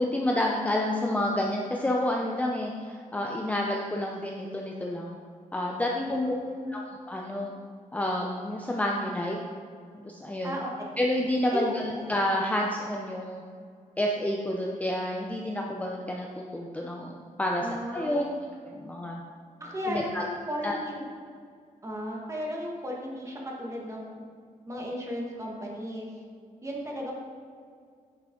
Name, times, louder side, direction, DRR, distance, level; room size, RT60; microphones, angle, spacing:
voice 1, 0.0-5.2 5.5-6.3 6.7-7.6 7.9-9.4 9.9-10.6 11.0-13.4 14.0-17.7 17.9-18.3 18.6-19.2 19.9-20.2 20.6-20.8, left 1 dB, 10° left, -1 dB, 0.5 m, -29 dB
voice 2, 5.9-6.7 10.4-10.7 11.5-11.8 17.6-18.3 19.6-21.0 21.8-24.2 24.7-26.1 26.6-27.1, equal, 20° right, -2 dB, 1.6 m, -35 dB
10.0 x 5.9 x 3.8 m, 2.1 s
wide cardioid pair, 160°, 14 cm